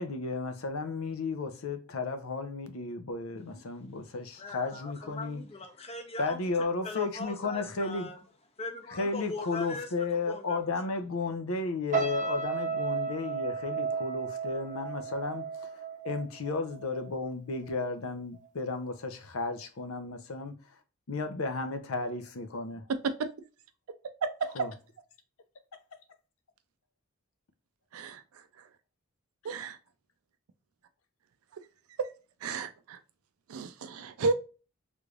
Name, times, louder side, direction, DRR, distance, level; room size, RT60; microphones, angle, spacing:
voice 1, 0.0-5.4 6.2-8.1 8.9-20.6 21.1-22.8 24.5-24.7, left 3 dB, 85° left, 0.6 m, -34 dB
voice 2, 4.4-6.4 6.8-8.2 8.6-9.9 10.3-10.6, left 2 dB, 30° left, 0.7 m, -40 dB
sound 1, 11.9-17.2 17.5-17.8, right 6 dB, 35° right, 0.6 m, -34 dB
voice 3, 29.4-29.8 32.4-33.0 33.5-34.3, right 3 dB, 90° right, 0.4 m, -33 dB
3.4 x 3.1 x 2.4 m
head